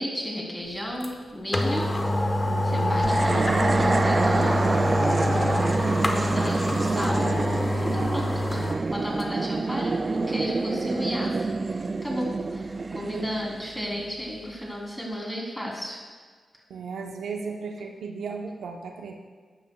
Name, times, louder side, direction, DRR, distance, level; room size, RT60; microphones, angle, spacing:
voice 1, 0.0-1.9 2.6-4.7 5.2-5.4 6.0-7.2 7.8-16.0, equal, 5° left, -2 dB, 3.1 m, -33 dB
sound 1, 1.0-1.1 1.5-8.8 9.2-9.3, left 1 dB, 30° left, 1.0 m, -25 dB
voice 2, 2.4-3.0 6.9-7.6 12.9-13.2 16.7-19.2, right 5 dB, 90° right, 2 dB, 0.8 m, -35 dB
sound 2, 3.0-14.4, right 3 dB, 45° right, 0.3 m, -27 dB
14.0 x 9.4 x 2.3 m, 1.5 s
cardioid pair, 60°, 0 cm